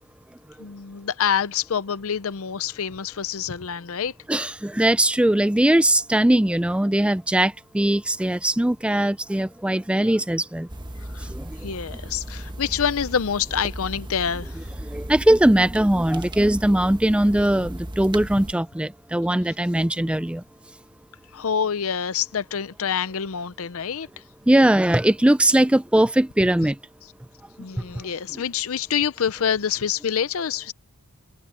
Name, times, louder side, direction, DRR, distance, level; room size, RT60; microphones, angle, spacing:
voice 1, 0.6-4.1 11.1-11.3 11.6-14.6 21.3-24.1 27.6-30.7, left 7 dB, 65° left, 0.6 m, -26 dB
voice 2, 4.3-10.7 11.3-11.6 14.9-20.4 24.5-26.8 28.3-28.4, right 1 dB, 5° right, 0.4 m, -20 dB
sound 1, 10.7-18.5, right 1 dB, 20° right, 1.2 m, -36 dB
head